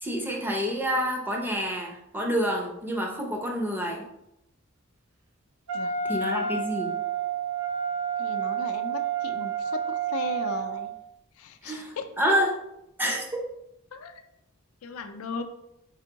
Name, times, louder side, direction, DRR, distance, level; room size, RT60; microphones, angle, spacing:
voice 1, 0.0-4.0 6.1-6.9 11.6-12.5 13.0-13.4, equal, 10° right, 0 dB, 0.5 m, -28 dB
voice 2, 5.7-6.2 8.2-11.0 11.4-12.1 13.9-14.2 14.8-15.4, left 4 dB, 80° left, 7 dB, 0.4 m, -37 dB
Wind instrument woodwind instrument, 5.7-10.9, right 7 dB, 85° right, 0.7 m, -29 dB
4.4 x 3.4 x 2.8 m, 0.84 s
head